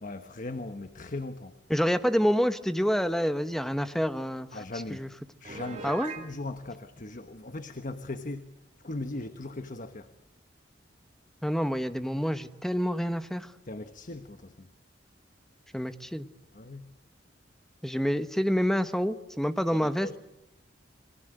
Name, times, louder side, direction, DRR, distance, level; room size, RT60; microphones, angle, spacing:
voice 1, 0.0-1.5 4.5-5.1 5.4-8.5 8.8-10.1 13.7-14.7 16.5-16.9 19.7-20.2, left 2 dB, 45° left, 1.2 m, -39 dB
voice 2, 1.7-4.5 4.9-5.1 5.8-6.1 11.4-13.5 15.7-16.3 17.8-20.2, equal, ahead, 1.1 m, -27 dB
Piano, 5.4-6.3, right 4 dB, 40° right, 4.1 m, -39 dB
28.0 x 22.5 x 7.9 m
head